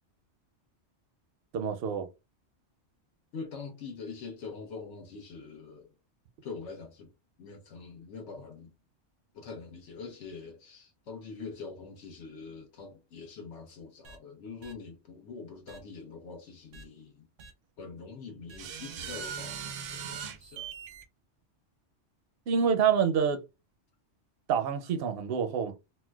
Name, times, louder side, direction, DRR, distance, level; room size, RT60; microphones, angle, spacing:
voice 1, 1.5-2.1 22.5-23.4 24.5-25.8, right 7 dB, 65° right, 0.7 m, -27 dB
voice 2, 3.3-5.9 6.4-7.1 7.4-8.7 9.3-17.3 17.8-20.7, left 4 dB, 80° left, 1.1 m, -44 dB
sound 1, 14.0-14.2 14.6-14.7 15.7-15.8 16.7-16.8 17.4-17.5 18.5-21.0, right 7 dB, 85° right, 1.0 m, -40 dB
4.2 x 2.1 x 2.3 m
omnidirectional pair, 1.2 m